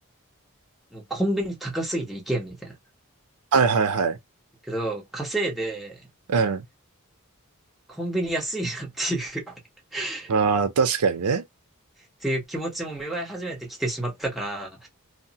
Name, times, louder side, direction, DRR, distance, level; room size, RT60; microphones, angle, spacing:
voice 1, 0.9-2.7 4.7-6.0 7.9-9.5 9.9-10.3 12.2-14.9, right 1 dB, ahead, 0.7 m, -29 dB
voice 2, 3.5-4.2 6.3-6.6 10.3-11.4, right 5 dB, 85° right, 0.5 m, -21 dB
2.8 x 2.0 x 2.7 m
head